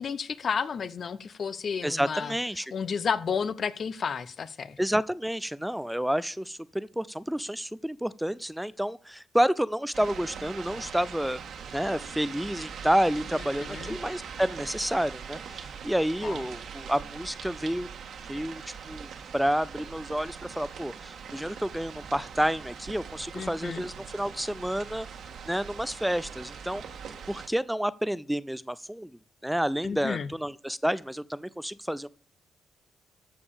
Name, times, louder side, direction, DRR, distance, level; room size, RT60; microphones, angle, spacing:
voice 1, 0.0-2.3 2.7-4.8 13.6-14.0 16.2-16.4 23.3-23.8 29.8-30.3, left 6 dB, 55° left, 16 dB, 0.7 m, -32 dB
voice 2, 1.8-2.7 4.8-11.4 11.7-17.9 18.3-18.6 18.9-25.1 25.5-26.8 27.3-29.1 29.4-32.1, equal, 5° right, 18 dB, 0.4 m, -29 dB
sound 1, 9.9-27.5, right 6 dB, 70° right, 1.9 m, -42 dB
13.5 x 5.3 x 7.1 m, 0.43 s
cardioid pair, 80°, 0 cm